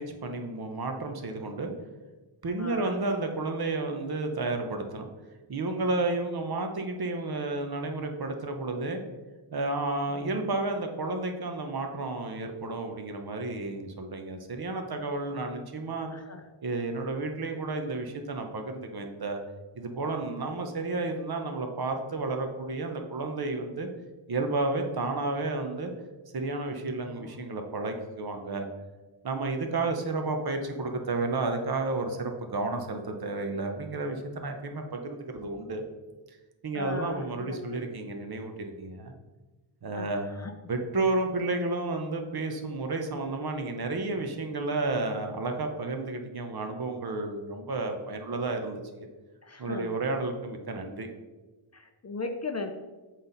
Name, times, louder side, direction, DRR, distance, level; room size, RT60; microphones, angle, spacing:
voice 1, 0.0-1.7 2.4-5.1 5.5-9.0 9.5-16.1 16.6-19.4 19.7-23.9 24.3-25.9 26.3-28.7 29.2-35.9 36.6-39.1 39.8-40.3 40.7-49.1 49.6-51.1, right 2 dB, 50° right, 4 dB, 0.8 m, -31 dB
voice 2, 2.6-3.0 10.1-10.3 16.1-16.5 27.2-27.4 36.7-37.9 39.9-40.5 49.4-50.1 51.7-52.7, left 3 dB, 35° left, 5 dB, 0.5 m, -38 dB
7.8 x 4.1 x 3.9 m, 1.2 s
wide cardioid pair, 115°, 50 cm